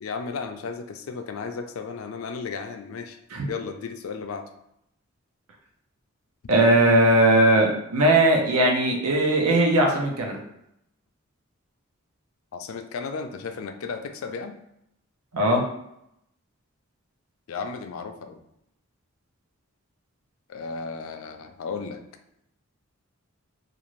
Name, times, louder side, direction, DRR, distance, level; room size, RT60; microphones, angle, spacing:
voice 1, 0.0-3.2 3.5-4.5 12.5-14.6 17.5-18.4 20.5-22.0, left 5 dB, 75° left, 6 dB, 0.4 m, -34 dB
voice 2, 6.5-10.4 15.3-15.6, right 1 dB, 90° right, 1 dB, 0.7 m, -19 dB
2.5 x 2.5 x 3.1 m, 0.79 s
head